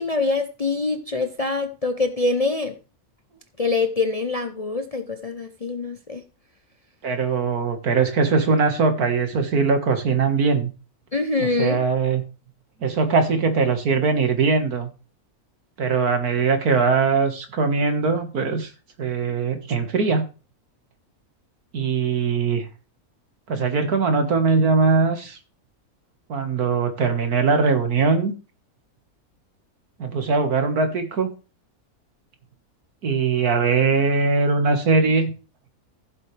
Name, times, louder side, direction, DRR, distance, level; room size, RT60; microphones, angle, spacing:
voice 1, 0.0-2.7 3.6-6.2 11.1-11.8, left 3 dB, 35° left, 7 dB, 0.6 m, -24 dB
voice 2, 7.0-10.7 11.4-12.2 12.8-14.9 15.8-18.7 19.0-20.3 21.7-22.7 23.5-25.4 26.3-28.3 30.0-31.3 33.0-35.3, right 4 dB, 75° right, 7 dB, 2.2 m, -21 dB
15.0 x 7.7 x 3.4 m, 0.33 s
omnidirectional pair, 1.6 m